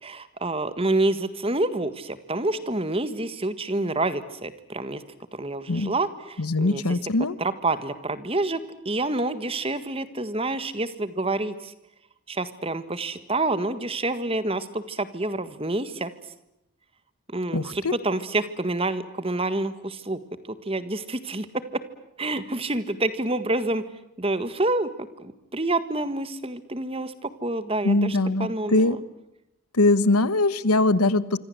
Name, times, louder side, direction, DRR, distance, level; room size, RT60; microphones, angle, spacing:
voice 1, 0.0-5.0 5.3-7.0 7.4-8.6 8.8-11.7 12.3-16.1 17.3-20.2 20.6-21.8 22.2-23.8 24.2-24.9 25.2-29.0, right 2 dB, 25° right, 13 dB, 1.7 m, -28 dB
voice 2, 6.4-7.4 17.5-17.9 27.8-29.0 29.7-31.4, left 2 dB, 90° left, 17 dB, 1.2 m, -22 dB
27.0 x 25.5 x 7.9 m, 0.85 s
head